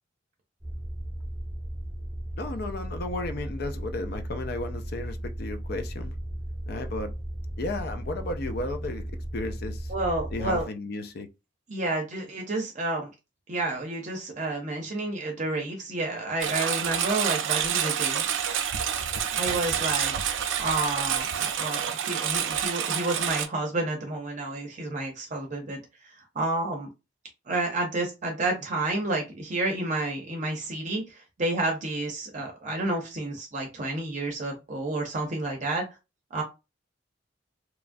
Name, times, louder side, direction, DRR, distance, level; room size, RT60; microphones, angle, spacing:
sound 1, 0.6-10.6, right 1 dB, 5° right, 0.8 m, -35 dB
voice 1, 2.4-6.1 6.7-7.1 7.6-9.0 9.3-9.9 10.3-11.3, left 2 dB, 55° left, 0.4 m, -34 dB
voice 2, 9.9-10.6 11.7-13.1 13.5-18.3 19.3-20.1 20.6-26.9 27.5-35.9 36.3-36.4, right 2 dB, 40° right, 0.6 m, -30 dB
Engine, 16.4-23.5, right 8 dB, 85° right, 0.4 m, -28 dB
3.0 x 2.3 x 2.5 m
head